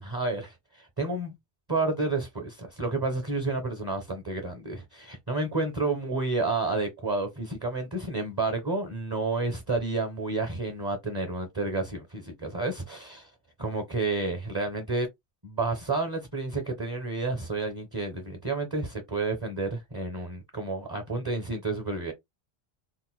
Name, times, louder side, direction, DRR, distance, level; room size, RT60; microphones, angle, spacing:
voice 1, 0.0-1.3 1.7-13.3 13.6-15.1 15.4-22.1, right 3 dB, 25° right, 0.6 m, -30 dB
3.9 x 2.1 x 2.3 m
omnidirectional pair, 1.1 m